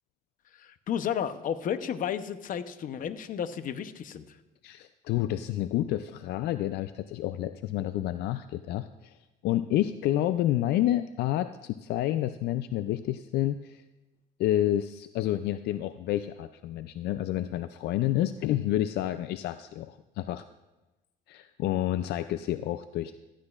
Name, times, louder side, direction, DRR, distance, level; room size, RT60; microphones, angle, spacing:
voice 1, 0.6-4.4, left 9 dB, 55° left, 11 dB, 0.8 m, -32 dB
voice 2, 4.6-9.2 9.4-13.8 14.4-20.4 21.3-23.2, left 13 dB, 75° left, 11 dB, 0.4 m, -29 dB
16.0 x 13.5 x 2.4 m, 1.0 s
cardioid pair, 110°, 17 cm